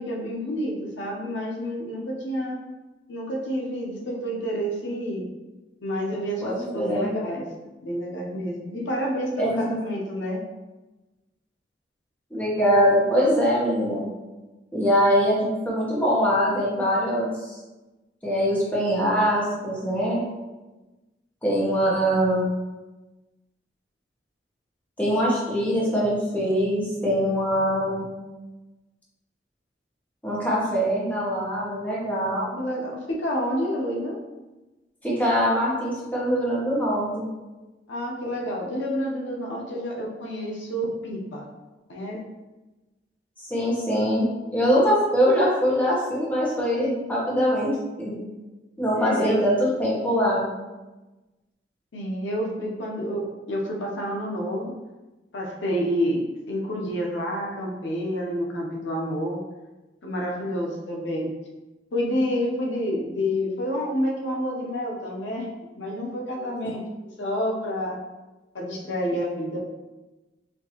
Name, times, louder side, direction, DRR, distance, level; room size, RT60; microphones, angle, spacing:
voice 1, 0.0-2.6 3.1-5.2 5.8-7.4 7.8-10.4 32.6-34.1 37.9-41.5 41.9-42.2 49.0-49.4 51.9-54.7 55.3-59.4 60.0-61.3 61.9-65.5 65.7-66.8 67.2-68.0 68.5-69.6, equal, 80° left, -1 dB, 0.7 m, -29 dB
voice 2, 6.4-7.1 9.4-9.7 12.3-14.0 14.7-17.6 18.2-20.2 21.4-22.5 25.0-28.1 30.2-32.6 35.0-37.3 43.5-47.7 48.0-48.2 48.8-50.4 66.6-66.7, equal, 10° left, -6 dB, 1.0 m, -23 dB
4.4 x 2.7 x 2.8 m, 1.1 s
head